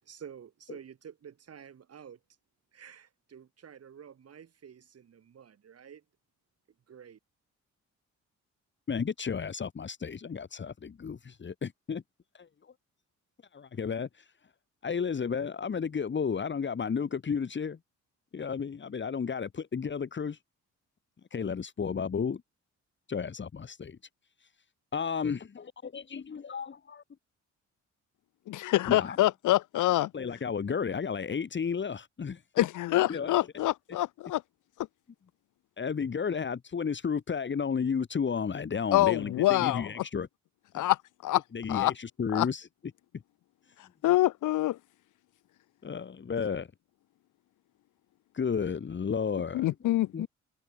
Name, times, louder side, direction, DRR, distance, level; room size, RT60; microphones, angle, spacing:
voice 1, 0.0-2.2 2.7-6.0 6.9-7.2, right 8 dB, 55° right, 7.6 m, -50 dB
voice 2, 8.9-12.0 12.3-12.5 13.5-14.3 14.8-17.8 18.3-20.4 21.3-22.4 23.1-24.0 24.9-25.6 25.9-27.0 28.9-29.2 30.1-32.7 33.1-33.4 35.8-40.3 40.7-40.9 41.5-42.7 45.8-46.7 48.3-49.7 50.1-50.3, left 6 dB, 40° left, 2.7 m, -32 dB
voice 3, 28.5-30.1 32.6-34.4 38.9-39.9 40.7-41.4 41.7-41.9 42.3-42.5 44.0-44.8 49.5-50.3, left 15 dB, 85° left, 1.8 m, -26 dB
cardioid pair, 90°, 30 cm